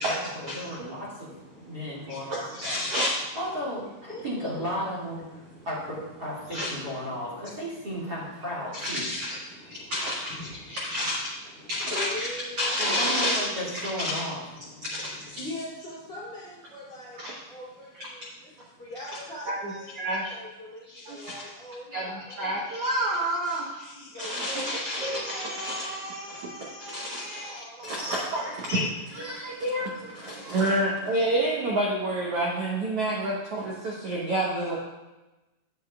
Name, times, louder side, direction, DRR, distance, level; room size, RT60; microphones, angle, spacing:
voice 1, 0.0-2.9 3.3-9.1 12.8-14.4, equal, 30° right, -8 dB, 2.4 m, -34 dB
voice 2, 0.6-1.0 1.4-2.9 3.8-4.7 5.5-5.7 6.1-8.5 8.7-9.0 9.3-11.1 11.6-12.8 14.3-17.2 17.5-18.3 18.8-20.0 20.3-22.9 23.9-24.7 27.3-28.1, left 1 dB, 20° left, -8 dB, 3.0 m, -43 dB
voice 3, 2.1-3.3 6.5-6.7 8.7-9.4 9.6-10.4 10.7-11.3 11.7-12.3 12.6-13.4 13.8-14.2 14.8-15.4 17.2-17.3 18.0-18.1 19.5-20.3 20.9-21.4 21.9-22.1 22.4-34.8, right 1 dB, 65° right, -4 dB, 1.5 m, -29 dB
9.4 x 9.3 x 2.4 m, 1.1 s
omnidirectional pair, 4.0 m